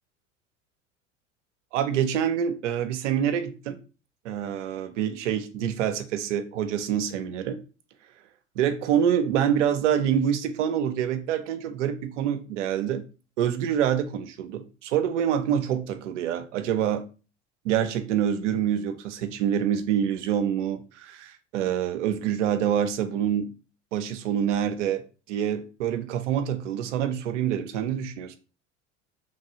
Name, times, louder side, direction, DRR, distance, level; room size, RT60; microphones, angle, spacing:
voice 1, 1.7-3.8 4.2-7.6 8.6-13.0 13.4-17.1 17.6-23.5 23.9-25.0 25.3-28.4, right 9 dB, 70° right, 0.5 m, -26 dB
3.0 x 2.3 x 2.7 m
hypercardioid pair, 80°, 38 cm